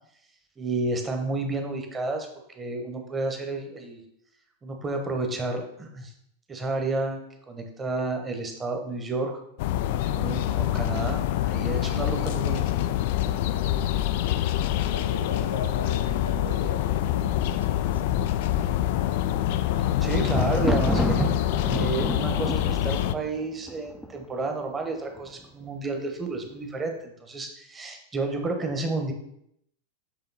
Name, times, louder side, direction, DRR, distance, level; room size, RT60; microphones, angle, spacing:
voice 1, 0.6-2.3 2.5-4.0 4.6-6.1 6.5-9.4 10.1-12.6 20.0-21.2 21.6-29.1, right 3 dB, 20° right, 4 dB, 1.1 m, -31 dB
sound 1, 9.6-23.1, left 12 dB, 50° left, 0.3 m, -26 dB
voice 2, 14.9-18.3, left 3 dB, 70° left, 6 dB, 0.9 m, -38 dB
Thunder, 19.3-24.4 25.2-25.7 25.9-26.0, equal, ahead, 0.6 m, -30 dB
7.9 x 3.6 x 4.1 m, 0.73 s
figure-of-eight pair, 90°, 0 cm